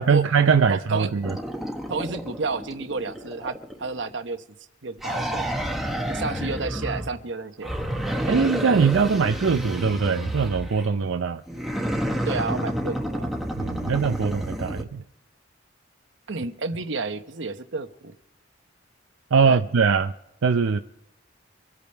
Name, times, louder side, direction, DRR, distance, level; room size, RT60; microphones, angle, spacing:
voice 1, 0.0-1.4 8.2-11.4 13.6-15.0 19.3-20.1 20.4-20.8, right 5 dB, 85° right, 7 dB, 0.5 m, -21 dB
voice 2, 0.7-1.1 1.9-4.4 4.8-5.7 6.1-7.7 12.2-13.3 16.3-18.1 19.4-19.6, right 3 dB, 65° right, 9 dB, 1.0 m, -31 dB
sound 1, 1.2-4.1 5.0-7.2 7.6-10.9 11.5-14.8, equal, ahead, 1.1 m, -30 dB
25.0 x 8.6 x 4.5 m, 0.85 s
head